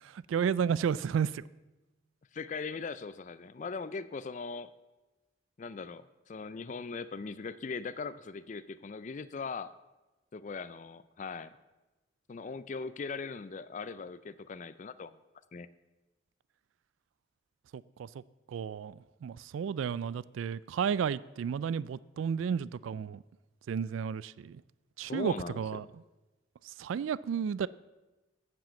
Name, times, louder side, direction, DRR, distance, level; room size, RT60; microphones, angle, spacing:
voice 1, 0.0-1.4 17.7-18.1 18.5-23.2 23.7-24.6 25.0-25.9 26.6-27.7, right 7 dB, 90° right, 0.3 m, -32 dB
voice 2, 2.3-4.7 5.6-9.7 10.3-11.5 12.3-15.1 15.5-15.7 25.0-25.8, left 4 dB, 40° left, 0.4 m, -40 dB
9.1 x 7.6 x 7.4 m
head